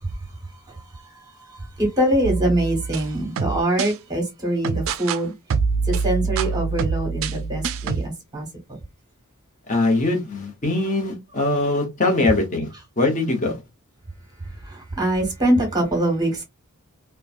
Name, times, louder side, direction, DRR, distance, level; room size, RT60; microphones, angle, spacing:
voice 1, 0.0-5.3 5.8-8.5 14.4-16.4, right 1 dB, 15° right, 1.2 m, -24 dB
sound 1, 2.2-3.9 4.6-5.2 5.5-8.1, right 5 dB, 65° right, 0.3 m, -25 dB
voice 2, 9.7-12.7 13.0-13.6, left 2 dB, 35° left, 0.9 m, -22 dB
3.0 x 2.2 x 2.4 m
head